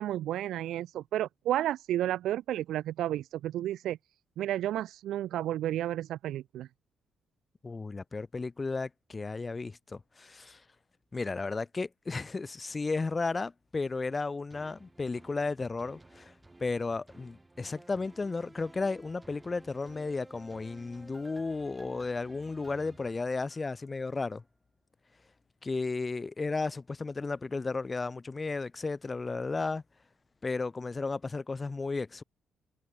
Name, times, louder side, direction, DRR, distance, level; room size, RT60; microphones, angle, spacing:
voice 1, 0.0-4.0 4.4-6.7, right 13 dB, 80° right, 0.4 m, -32 dB
voice 2, 7.6-10.6 11.1-16.3 16.6-24.4 25.6-29.8 30.4-32.2, left 3 dB, 25° left, 2.4 m, -34 dB
sound 1, 14.5-23.9 24.4-24.5, right 2 dB, 15° right, 2.8 m, -55 dB
cardioid pair, 90°, 0 cm